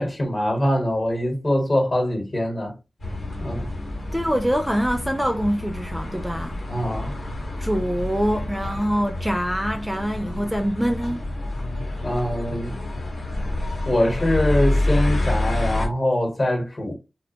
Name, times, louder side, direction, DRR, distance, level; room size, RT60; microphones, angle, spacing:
voice 1, 0.0-2.7 3.4-3.7 6.7-7.1 12.0-12.8 13.9-16.9, left 1 dB, 45° left, 1.0 m, -23 dB
sound 1, 3.0-15.9, left 1 dB, 80° left, 1.0 m, -28 dB
voice 2, 4.1-6.6 7.6-11.2, equal, 5° right, 0.4 m, -24 dB
2.4 x 2.1 x 2.7 m
cardioid pair, 50°, 0 cm